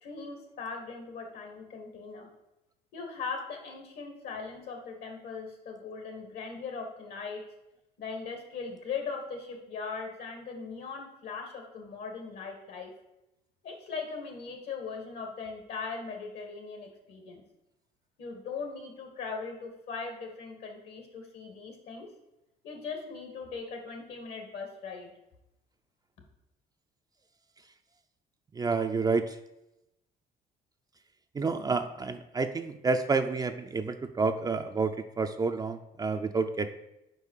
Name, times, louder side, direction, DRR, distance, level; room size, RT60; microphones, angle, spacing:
voice 1, 0.0-2.3 2.9-7.4 8.0-12.9 13.6-17.4 18.2-22.1 22.6-25.1, left 5 dB, 70° left, 3 dB, 1.8 m, -39 dB
voice 2, 28.5-29.3 31.3-36.7, right 4 dB, 25° right, 7 dB, 0.4 m, -29 dB
5.4 x 4.8 x 6.4 m, 0.89 s
cardioid pair, 110°, 17 cm